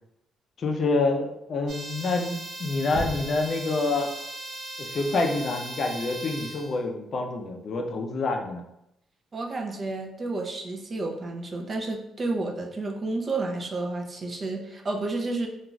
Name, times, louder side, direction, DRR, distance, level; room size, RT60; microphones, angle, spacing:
voice 1, 0.6-4.1 4.9-8.6, left 3 dB, 50° left, 3 dB, 0.4 m, -27 dB
sound 1, 1.7-6.8, right 1 dB, 70° right, 0.8 m, -38 dB
Knock, 2.9-3.6, left 1 dB, 20° left, 0.9 m, -35 dB
voice 2, 9.3-15.5, right 2 dB, 35° right, 1 dB, 0.5 m, -31 dB
2.4 x 2.3 x 3.0 m, 0.82 s
cardioid pair, 90°, 0 cm